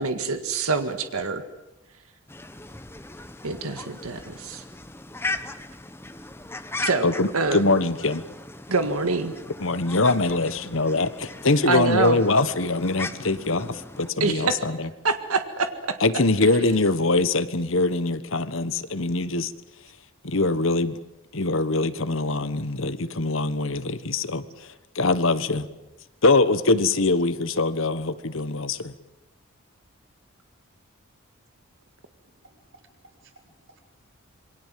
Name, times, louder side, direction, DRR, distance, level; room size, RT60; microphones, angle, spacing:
voice 1, 0.0-1.4 3.4-4.6 6.8-7.6 8.7-9.3 11.7-12.2 14.2-14.6 15.0-16.0, right 4 dB, 85° right, 8 dB, 1.8 m, -25 dB
sound 1, 2.3-14.1, left 2 dB, 10° left, 1.1 m, -38 dB
voice 2, 7.0-8.2 9.6-14.9 16.0-19.5 20.2-21.0 21.3-24.7 24.9-25.7 26.2-28.9, left 2 dB, 65° left, 12 dB, 1.4 m, -23 dB
voice 3, 32.3-33.8, right 2 dB, 60° right, 1 dB, 5.3 m, -57 dB
27.5 x 23.0 x 7.7 m, 0.96 s
head